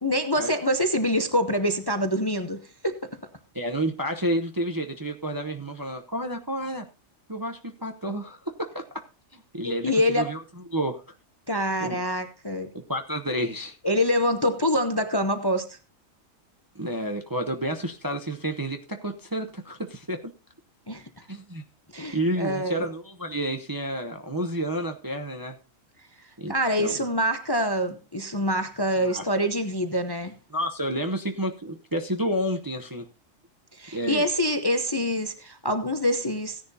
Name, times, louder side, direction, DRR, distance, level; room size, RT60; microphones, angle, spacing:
voice 1, 0.0-3.0 9.6-10.3 11.5-12.7 13.8-15.8 20.9-21.0 21.9-22.8 26.5-30.3 33.7-36.6, equal, 25° left, 0.7 m, -25 dB
voice 2, 3.5-6.9 7.3-9.0 9.3-10.4 10.7-11.0 11.8-12.0 12.7-13.8 16.7-20.2 21.3-21.6 22.1-25.5 26.4-27.1 29.0-29.3 30.5-33.0 33.9-34.3, right 1 dB, 20° right, 0.7 m, -30 dB
16.0 x 10.5 x 2.8 m
omnidirectional pair, 1.4 m